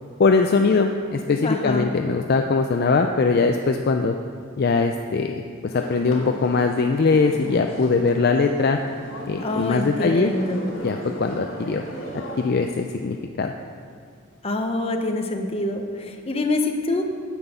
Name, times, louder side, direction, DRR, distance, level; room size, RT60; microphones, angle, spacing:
voice 1, 0.2-4.1 4.6-8.8 9.3-10.3 10.8-11.8 12.4-13.5, left 4 dB, 45° left, 5 dB, 0.4 m, -21 dB
voice 2, 1.4-1.9 9.4-10.6 14.4-17.0, left 2 dB, 25° left, 4 dB, 0.8 m, -25 dB
sound 1, 5.7-12.5, equal, 60° left, 2.0 m, -36 dB
9.0 x 6.1 x 7.9 m, 2.2 s
head